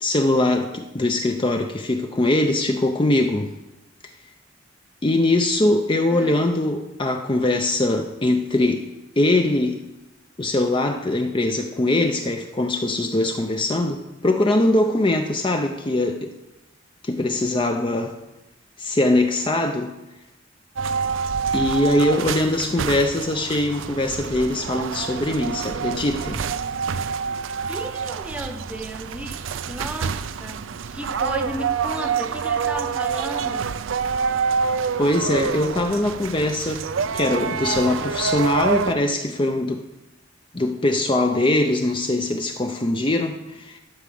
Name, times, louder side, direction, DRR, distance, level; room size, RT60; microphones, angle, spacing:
voice 1, 0.0-3.5 4.0-4.1 5.0-8.9 9.2-9.8 10.4-16.3 17.0-18.1 18.8-19.9 21.5-26.4 35.0-36.8 37.1-39.9 40.5-43.8, left 1 dB, 25° left, 5 dB, 0.5 m, -22 dB
sound 1, 20.8-38.9, right 6 dB, 80° right, 0.5 m, -27 dB
voice 2, 27.7-29.4 29.6-33.7, right 1 dB, 5° right, 5 dB, 0.9 m, -34 dB
11.5 x 5.1 x 7.5 m, 0.98 s
head